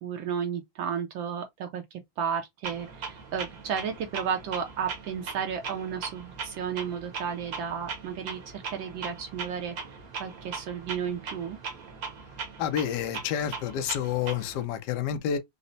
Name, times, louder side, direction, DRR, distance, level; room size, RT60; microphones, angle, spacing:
voice 1, 0.0-11.6, right 7 dB, 75° right, 1.3 m, -33 dB
Clock, 2.6-14.6, right 5 dB, 55° right, 1.1 m, -40 dB
voice 2, 12.6-15.4, left 9 dB, 70° left, 1.0 m, -29 dB
4.1 x 2.0 x 2.6 m
omnidirectional pair, 2.3 m